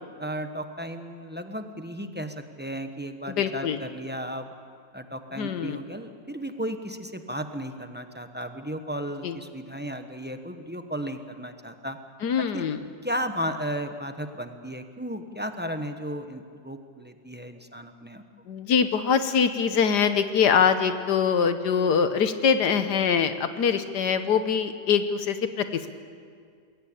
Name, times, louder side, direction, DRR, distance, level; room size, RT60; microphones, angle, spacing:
voice 1, 0.2-4.5 4.9-12.0 12.4-12.7 13.0-18.2, equal, 10° right, 7 dB, 0.6 m, -34 dB
voice 2, 3.3-3.8 5.4-5.8 9.2-9.3 12.2-12.8 18.5-25.9, left 7 dB, 75° left, 10 dB, 1.5 m, -23 dB
21.0 x 17.5 x 8.7 m, 2.1 s
omnidirectional pair, 1.9 m